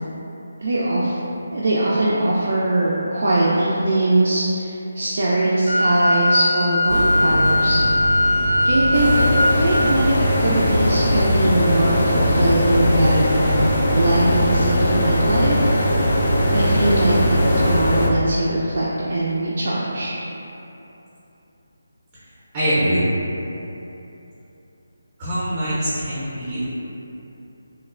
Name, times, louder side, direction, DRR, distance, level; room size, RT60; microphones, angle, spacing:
voice 1, 0.6-1.2 1.5-7.8 8.6-16.2 16.5-20.1, right 1 dB, 65° right, -7 dB, 0.3 m, -21 dB
Wind instrument woodwind instrument, 5.6-9.5, left 1 dB, 80° left, 1.3 m, -20 dB
sound 1, 6.9-17.8, equal, 15° left, 0.6 m, -24 dB
sound 2, 8.9-18.1, left 1 dB, 45° left, 0.3 m, -20 dB
voice 2, 22.5-23.1 25.2-26.7, equal, 25° right, -12 dB, 0.6 m, -22 dB
2.9 x 2.0 x 2.4 m, 2.9 s
figure-of-eight pair, 165°, 0 cm